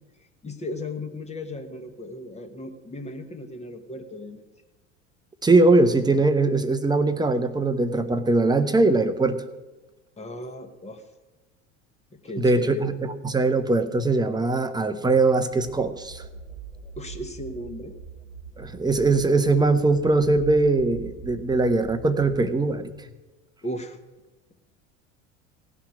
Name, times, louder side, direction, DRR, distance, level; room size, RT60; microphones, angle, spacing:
voice 1, 0.2-4.4 10.2-11.0 12.1-12.8 17.0-17.9 23.6-24.0, left 1 dB, 20° left, 5 dB, 1.5 m, -36 dB
voice 2, 5.4-9.4 12.4-16.2 18.6-22.9, right 3 dB, 10° right, 10 dB, 1.0 m, -21 dB
sound 1, 15.5-23.1, right 5 dB, 85° left, 2.0 m, -42 dB
17.5 x 5.8 x 9.3 m, 1.2 s
figure-of-eight pair, 70°, 37 cm